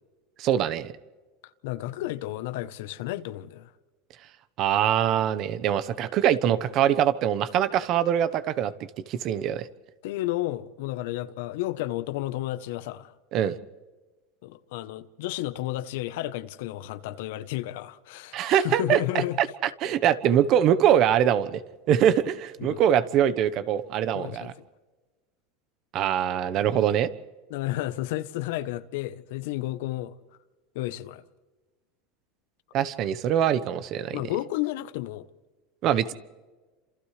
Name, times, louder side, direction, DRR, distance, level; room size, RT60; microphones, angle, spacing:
voice 1, 0.4-0.9 4.6-8.7 9.1-9.7 13.3-13.5 18.3-19.0 19.4-21.6 21.9-24.5 25.9-27.1 32.7-34.2 35.8-36.1, right 10 dB, 50° right, 1.1 m, -23 dB
voice 2, 1.6-3.7 10.0-13.1 14.4-19.4 22.6-22.8 24.1-24.5 27.5-30.2 30.7-31.2 34.1-35.3, left 15 dB, 75° left, 0.9 m, -32 dB
30.0 x 27.5 x 3.3 m
supercardioid pair, 125°, 0 cm